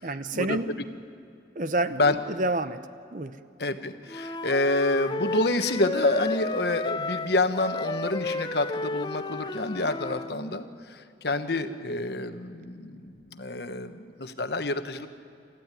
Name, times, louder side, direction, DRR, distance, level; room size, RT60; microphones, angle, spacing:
voice 1, 0.0-0.7 1.5-2.8 3.1-3.4, right 2 dB, 45° right, 12 dB, 0.8 m, -29 dB
voice 2, 3.6-15.1, left 2 dB, 60° left, 9 dB, 1.2 m, -28 dB
Wind instrument woodwind instrument, 4.1-10.3, left 2 dB, 25° left, 0.6 m, -32 dB
27.5 x 14.5 x 9.8 m, 2.4 s
head